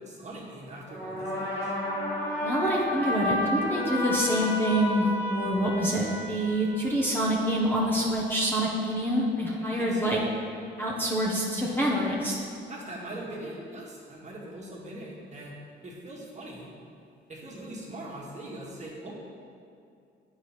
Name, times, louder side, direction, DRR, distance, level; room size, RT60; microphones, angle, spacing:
voice 1, 0.0-1.7 9.8-10.2 12.7-15.6 15.8-16.7 17.3-19.1, right 1 dB, 35° right, -4 dB, 1.8 m, -41 dB
sound 1, 0.9-7.3, left 1 dB, 70° left, 1.9 m, -31 dB
voice 2, 2.4-10.2 10.8-12.4, equal, 10° left, -4 dB, 1.1 m, -26 dB
8.8 x 4.8 x 4.4 m, 2.4 s
cardioid pair, 90°, 20 cm